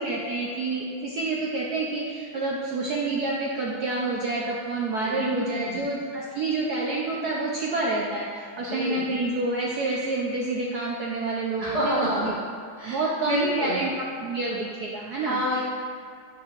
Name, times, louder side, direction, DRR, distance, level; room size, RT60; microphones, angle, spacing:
voice 1, 0.0-12.3 12.8-15.4, right 2 dB, 70° right, -3 dB, 0.9 m, -28 dB
voice 2, 5.0-5.9 8.6-9.1 11.6-12.3 12.8-13.9 15.2-15.6, left 1 dB, 80° left, -9 dB, 0.3 m, -29 dB
8.8 x 4.7 x 2.5 m, 2.3 s
omnidirectional pair, 2.3 m